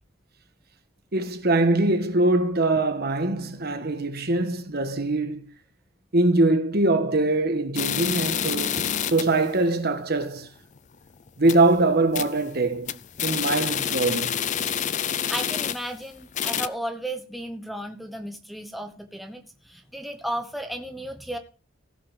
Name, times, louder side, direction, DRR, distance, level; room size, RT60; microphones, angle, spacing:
voice 1, 1.1-5.5 6.1-10.5 11.4-12.9 13.2-14.4, right 2 dB, 50° right, 1.3 m, -23 dB
sound 1, 7.8-9.4 9.8-9.9 10.2-10.3 10.8-11.0 11.3-11.7 12.1-12.5 12.7-16.0 16.3-16.7, left 9 dB, 35° left, 0.5 m, -28 dB
voice 2, 15.3-21.4, right 1 dB, ahead, 1.0 m, -34 dB
16.5 x 6.0 x 5.6 m
head